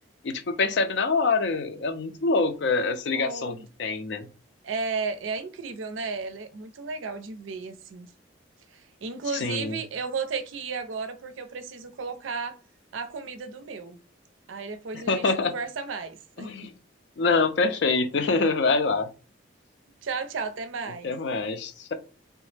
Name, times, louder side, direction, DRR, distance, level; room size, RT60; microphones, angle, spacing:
voice 1, 0.2-4.3 9.3-9.8 14.9-15.5 16.4-16.7 17.2-19.1 21.0-21.9, left 4 dB, 65° left, 0.4 m, -25 dB
voice 2, 3.1-3.6 4.6-8.1 8.7-12.6 12.9-14.0 14.5-16.5 20.0-21.1, right 4 dB, 90° right, 0.5 m, -34 dB
3.2 x 2.0 x 3.2 m
head